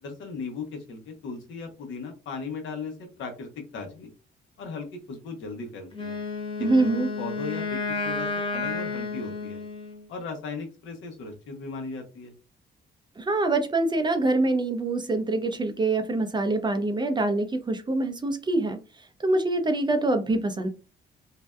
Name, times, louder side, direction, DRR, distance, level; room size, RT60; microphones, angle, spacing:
voice 1, 0.0-4.1 4.6-6.2 6.6-9.6 10.1-12.3, left 4 dB, 75° left, 0.8 m, -37 dB
Wind instrument woodwind instrument, 5.9-10.1, left 4 dB, 25° left, 0.7 m, -31 dB
voice 2, 6.6-7.1 13.2-18.8 19.2-20.7, right 2 dB, 25° right, 0.4 m, -25 dB
2.6 x 2.1 x 2.2 m
cardioid pair, 90°, 20 cm